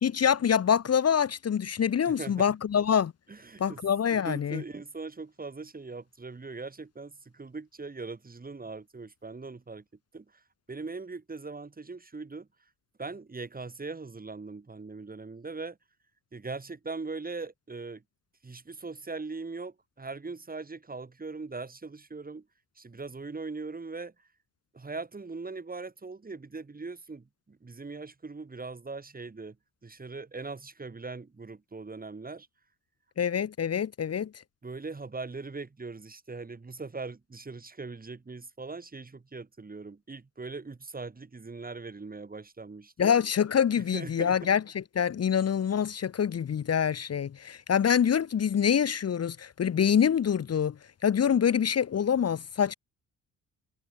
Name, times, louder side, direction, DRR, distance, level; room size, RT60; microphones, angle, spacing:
voice 1, 0.0-3.1 3.6-4.6 33.2-34.3 43.0-50.7 51.0-52.7, left 8 dB, 40° left, 1.6 m, -25 dB
voice 2, 2.1-2.4 3.3-3.8 4.1-9.8 10.1-10.4 10.7-12.5 13.0-15.8 16.3-18.0 18.4-22.5 22.7-24.3 24.7-29.6 29.8-32.5 34.6-43.2 43.9-44.4, right 3 dB, 25° right, 3.4 m, -40 dB
hypercardioid pair, 50°, 38 cm